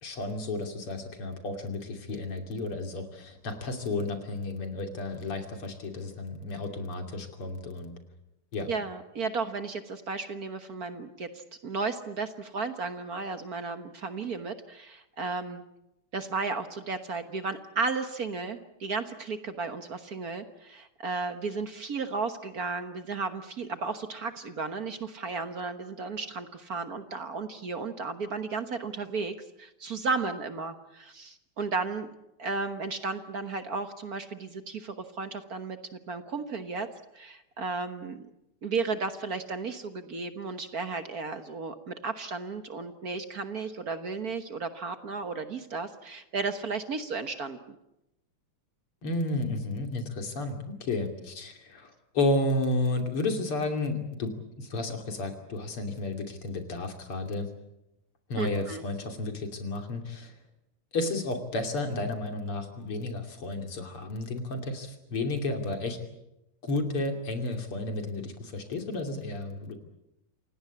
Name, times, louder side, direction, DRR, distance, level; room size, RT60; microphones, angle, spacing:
voice 1, 0.0-7.9 8.5-8.7 49.0-57.5 58.3-60.3 60.9-66.0 66.6-69.8, left 2 dB, 80° left, 5 dB, 3.8 m, -32 dB
voice 2, 8.7-15.6 16.1-32.1 32.4-36.9 37.1-38.3 38.6-47.6 58.4-58.8, right 4 dB, 50° right, 9 dB, 1.5 m, -34 dB
28.0 x 17.5 x 8.5 m, 0.88 s
omnidirectional pair, 2.4 m